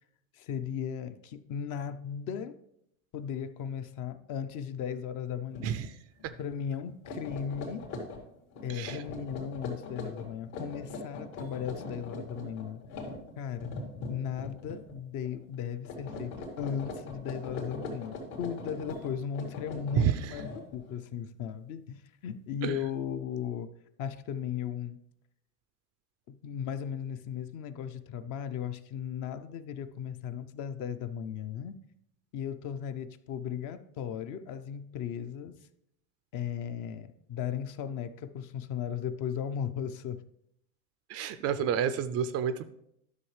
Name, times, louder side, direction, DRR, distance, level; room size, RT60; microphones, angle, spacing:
voice 1, 0.3-2.6 3.1-5.8 6.4-7.9 8.6-12.8 13.4-13.7 14.1-23.7 24.0-25.0 26.3-31.7 32.3-35.5 36.3-40.2, left 8 dB, 45° left, 11 dB, 0.6 m, -36 dB
sound 1, 5.5-5.9 6.2-6.4 6.9-15.0 15.2-15.6 15.8-20.9, left 2 dB, 75° left, 2.6 m, -41 dB
voice 2, 8.7-9.0 20.0-20.1 22.6-22.8 41.1-42.6, right 9 dB, 40° right, 13 dB, 0.4 m, -29 dB
11.0 x 6.4 x 3.2 m, 0.76 s
supercardioid pair, 110°, 44 cm